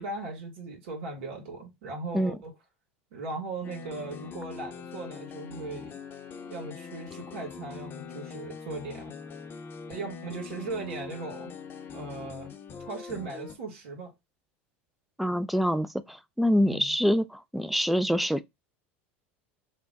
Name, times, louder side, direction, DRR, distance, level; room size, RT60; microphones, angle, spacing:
voice 1, 0.0-2.5 3.1-6.0 6.5-9.1 9.9-11.5 11.9-12.5 12.9-14.1 16.7-16.9, right 3 dB, 75° right, 2.0 m, -38 dB
sound 1, 3.6-13.6, left 5 dB, 35° left, 0.7 m, -42 dB
voice 2, 15.2-18.4, equal, ahead, 0.4 m, -26 dB
3.3 x 2.2 x 3.9 m
hypercardioid pair, 95°, 6 cm